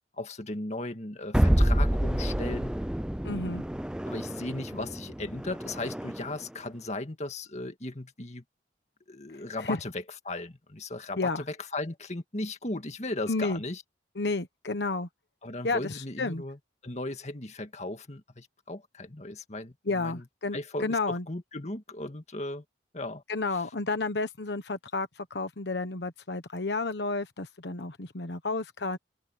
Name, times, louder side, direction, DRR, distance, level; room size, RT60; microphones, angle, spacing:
voice 1, 0.1-2.8 4.1-8.4 9.1-13.8 15.4-20.3 20.5-22.6 22.9-23.2 23.5-23.7, left 2 dB, 40° left, 2.0 m, -37 dB
sound 1, 1.3-6.4, equal, 5° right, 0.3 m, -28 dB
voice 2, 3.2-3.6 9.6-9.8 11.2-11.4 13.3-13.6 14.2-15.1 15.6-16.4 19.9-21.2 23.3-29.0, left 3 dB, 75° left, 1.2 m, -31 dB
head